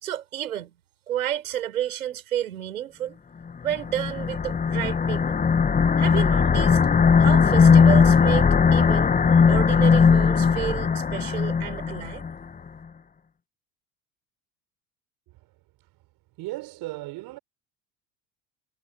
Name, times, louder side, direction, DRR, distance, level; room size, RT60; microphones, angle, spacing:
voice 1, 0.0-0.7 1.1-3.2 3.6-5.4 6.0-6.8 7.2-9.2 9.5-12.2, right 11 dB, 85° right, 5.4 m, -31 dB
sound 1, 3.7-12.3, left 5 dB, 20° left, 1.1 m, -19 dB
voice 2, 16.4-17.4, right 19 dB, 60° right, 5.6 m, -36 dB
hypercardioid pair, 75°, 42 cm